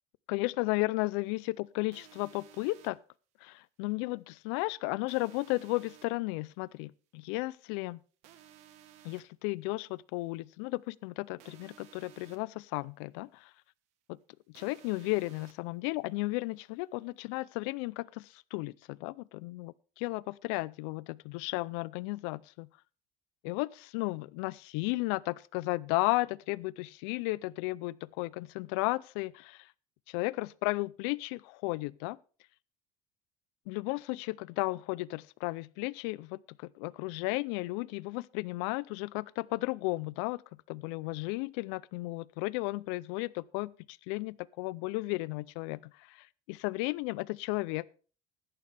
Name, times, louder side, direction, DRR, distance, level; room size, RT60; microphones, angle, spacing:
voice 1, 0.3-3.0 3.4-8.0 9.0-13.5 14.1-14.2 14.5-22.7 23.4-29.7 30.1-32.2 33.7-40.4 40.7-47.9, left 23 dB, 80° left, 0.5 m, -34 dB
sound 1, 1.9-2.9 5.1-6.1 8.2-9.2 11.4-12.4 14.5-15.5, right 11 dB, 50° right, 1.3 m, -56 dB
15.5 x 11.5 x 3.4 m
cardioid pair, 175°, 14 cm